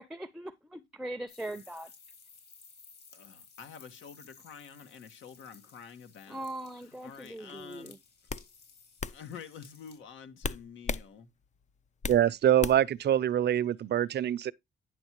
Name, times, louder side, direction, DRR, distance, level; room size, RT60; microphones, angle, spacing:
voice 1, 0.0-1.9 6.3-8.0, right 1 dB, ahead, 0.7 m, -40 dB
sound 1, 1.3-10.0, left 5 dB, 55° left, 4.5 m, -57 dB
voice 2, 3.1-6.4 6.7-7.9 9.1-11.3, left 7 dB, 75° left, 1.6 m, -48 dB
sound 2, 7.5-7.7 8.3-8.5 9.0-9.2 10.4-11.1 11.4-12.2 12.6-13.0, left 5 dB, 35° left, 0.6 m, -35 dB
voice 3, 12.1-14.5, right 11 dB, 60° right, 0.6 m, -25 dB
10.5 x 6.2 x 3.0 m
cardioid pair, 90°, 20 cm